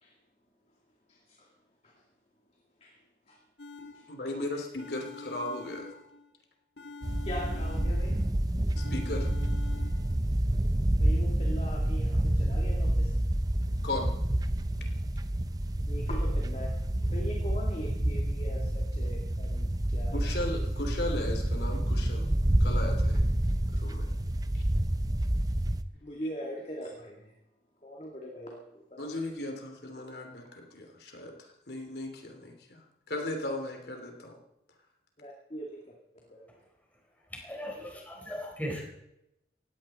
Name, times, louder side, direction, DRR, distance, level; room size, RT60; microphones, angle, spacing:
voice 1, 1.1-1.5 1.8-1.9 2.8-3.0 3.3-3.4 3.9-4.1 4.5-4.6 7.2-8.2 11.0-13.1 15.9-20.2 26.0-27.3 27.8-29.1 35.2-36.5, equal, 35° left, 0 dB, 2.3 m, -41 dB
sound 1, 3.6-4.4 4.8-6.4 6.8-8.3 8.8-10.2, left 4 dB, 85° left, 1.6 m, -47 dB
voice 2, 4.1-5.9 8.9-9.3 13.8-14.1 20.1-22.3 22.6-23.3 23.7-24.1 24.5-24.6 29.0-32.8 33.1-34.4, left 1 dB, 70° left, 3 dB, 3.1 m, -36 dB
sound 2, 7.0-25.8, right 1 dB, 20° right, 0.7 m, -28 dB
voice 3, 37.4-38.8, equal, 10° left, -1 dB, 4.5 m, -37 dB
18.5 x 16.0 x 4.3 m, 0.84 s
head